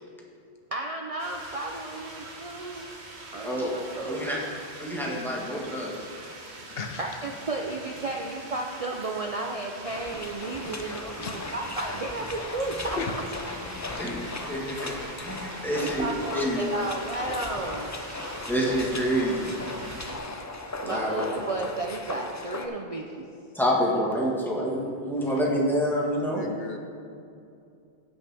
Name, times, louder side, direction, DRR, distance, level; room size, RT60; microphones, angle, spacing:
voice 1, 0.7-2.9 3.3-4.3 7.0-13.0 15.8-17.9 20.8-23.3 25.2-25.5, right 2 dB, 45° right, 1 dB, 0.5 m, -33 dB
sound 1, 1.2-20.2, right 2 dB, 90° right, 1.5 m, -44 dB
voice 2, 4.1-4.4 4.8-6.0 14.0-14.1 14.5-16.1 16.3-16.6 18.5-19.4 20.8-21.2 23.5-26.4, equal, ahead, -4 dB, 1.4 m, -27 dB
voice 3, 6.6-7.0 11.2-11.5 13.0-13.2 13.7-14.3 25.5-25.6 26.2-26.8, left 5 dB, 70° left, 5 dB, 0.9 m, -37 dB
sound 2, 9.8-22.7, left 2 dB, 25° left, 0.3 m, -37 dB
16.0 x 5.8 x 3.4 m, 2.5 s
omnidirectional pair, 1.1 m